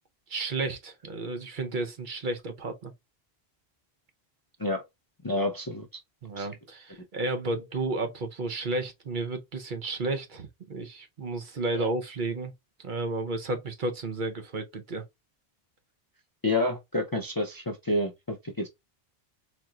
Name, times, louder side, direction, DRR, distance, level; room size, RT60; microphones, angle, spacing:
voice 1, 0.3-2.9 6.2-12.5 12.8-15.0, right 2 dB, 55° right, 0.8 m, -32 dB
voice 2, 5.2-5.9 6.4-6.5 11.7-11.9 16.4-18.7, left 2 dB, 30° left, 0.4 m, -29 dB
4.1 x 2.9 x 2.3 m
omnidirectional pair, 1.1 m